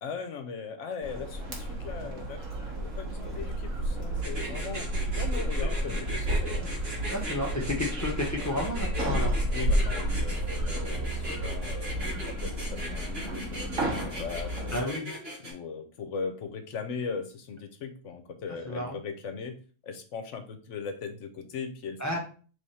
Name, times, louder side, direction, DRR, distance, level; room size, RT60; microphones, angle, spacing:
voice 1, 0.0-6.8 9.5-14.9 15.4-19.6 19.8-22.2, left 5 dB, 70° left, 7 dB, 1.0 m, -39 dB
sound 1, 1.0-14.8, right 1 dB, 85° right, 1.5 m, -31 dB
sound 2, 4.2-15.5, equal, 55° right, 1.5 m, -38 dB
voice 2, 7.1-9.3 14.7-15.1 18.7-19.0 22.0-22.2, left 1 dB, 15° left, -2 dB, 0.8 m, -31 dB
3.5 x 3.4 x 4.1 m, 0.40 s
omnidirectional pair, 1.3 m